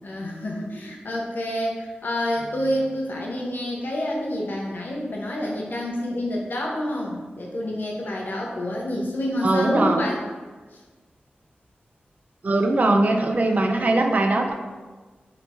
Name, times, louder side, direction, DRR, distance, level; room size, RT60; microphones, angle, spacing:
voice 1, 0.0-10.2 10.7-10.8 12.4-12.9 13.5-14.1, left 1 dB, 65° left, -2 dB, 0.7 m, -28 dB
voice 2, 9.4-10.0 12.4-14.5, right 2 dB, 45° right, 4 dB, 0.4 m, -20 dB
2.9 x 2.6 x 3.4 m, 1.3 s
wide cardioid pair, 75°, 4 cm